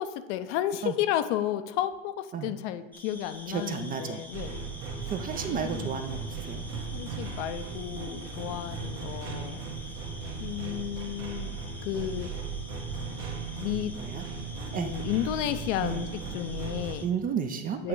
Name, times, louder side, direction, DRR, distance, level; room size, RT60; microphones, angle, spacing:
voice 1, 0.0-4.6 5.0-5.1 5.5-6.0 6.9-9.6 10.4-11.6 11.8-12.3 13.5-13.9 14.7-17.0 17.8-17.9, left 12 dB, 70° left, 10 dB, 0.6 m, -32 dB
sound 1, 2.9-17.1, left 1 dB, 5° left, 0.7 m, -47 dB
voice 2, 3.5-4.2 5.1-6.6 14.0-14.2 14.7-14.9 15.8-16.0 17.0-17.9, right 7 dB, 25° right, 8 dB, 0.3 m, -32 dB
sound 2, 4.3-16.9, right 4 dB, 65° right, 1.3 m, -37 dB
8.6 x 2.9 x 4.7 m, 1.0 s
supercardioid pair, 115°, 37 cm